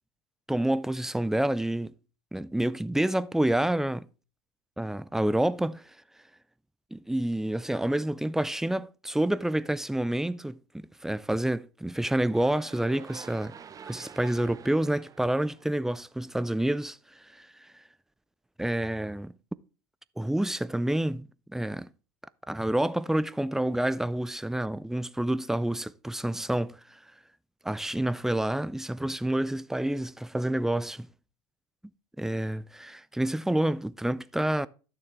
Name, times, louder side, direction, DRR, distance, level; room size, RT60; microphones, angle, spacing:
voice 1, 0.5-1.9 2.3-4.1 4.8-5.8 6.9-13.5 13.8-17.7 18.6-19.3 20.2-21.3 21.5-21.9 22.5-27.0 27.6-31.1 32.2-34.7, right 1 dB, 5° right, 0.4 m, -28 dB
Spaceship Fly-by A, 12.1-16.3, right 7 dB, 25° right, 0.8 m, -48 dB
11.5 x 6.8 x 3.5 m
hypercardioid pair, 80°, 13 cm